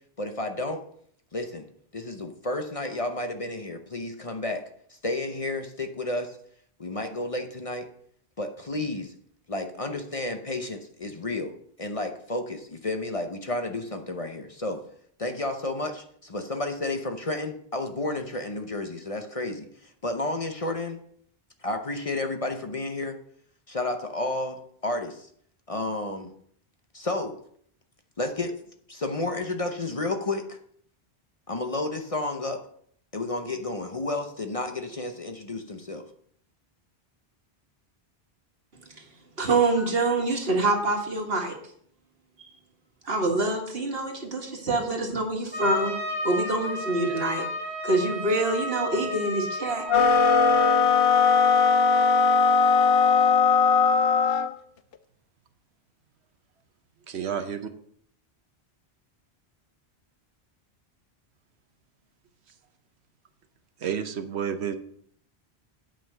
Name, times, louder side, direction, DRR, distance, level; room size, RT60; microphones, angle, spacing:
voice 1, 0.2-0.8 1.3-1.7 1.9-4.6 4.9-6.4 6.8-7.9 8.4-9.1 9.5-11.5 11.8-14.8 15.2-21.0 21.6-23.2 23.7-25.3 25.7-26.3 26.9-27.3 28.2-28.5 28.9-30.6 31.5-32.6 33.1-36.0, left 2 dB, 35° left, 5 dB, 0.8 m, -31 dB
voice 2, 39.4-41.6 43.0-45.9 46.2-47.5 47.8-49.9, right 2 dB, 65° right, 2 dB, 2.0 m, -25 dB
Trumpet, 45.5-50.8, equal, 10° left, 2.5 m, -33 dB
sound 1, 49.9-54.5, left 5 dB, 65° left, 0.8 m, -19 dB
voice 3, 57.1-57.7 63.8-64.7, right 8 dB, 80° right, 8 dB, 1.1 m, -30 dB
8.8 x 5.6 x 6.6 m, 0.63 s
omnidirectional pair, 1.1 m